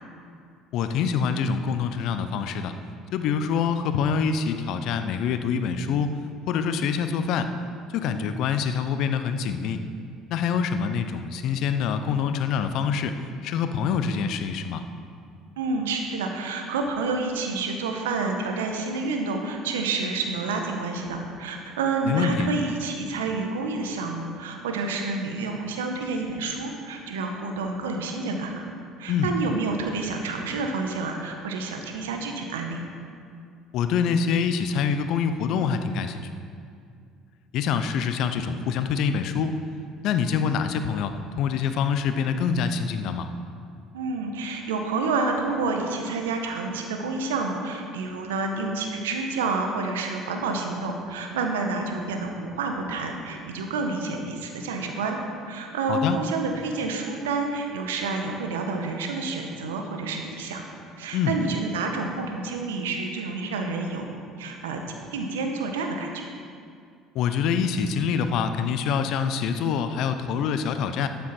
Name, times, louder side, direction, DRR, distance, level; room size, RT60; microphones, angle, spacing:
voice 1, 0.7-2.7 3.1-6.2 6.5-7.5 7.9-9.8 10.3-14.8 22.1-22.5 29.1-29.3 33.7-36.3 37.5-39.5 40.0-43.3 55.9-56.2 61.1-61.4 67.1-71.1, left 6 dB, 60° left, 9 dB, 0.7 m, -25 dB
voice 2, 15.6-28.6 29.0-32.8 43.9-55.2 55.5-60.6 61.0-64.1 64.4-66.3, right 3 dB, 80° right, 3 dB, 1.3 m, -29 dB
12.5 x 9.2 x 4.5 m, 2.3 s
hypercardioid pair, 65°, 0 cm